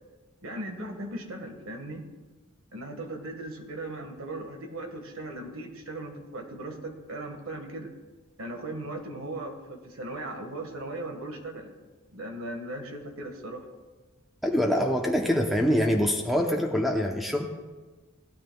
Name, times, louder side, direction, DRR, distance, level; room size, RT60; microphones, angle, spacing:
voice 1, 0.4-2.1 2.7-7.9 8.4-11.7 12.1-13.7, right 1 dB, 75° right, 4 dB, 1.5 m, -38 dB
voice 2, 14.4-17.5, equal, ahead, 1 dB, 0.8 m, -24 dB
17.5 x 12.5 x 2.3 m, 1.3 s
head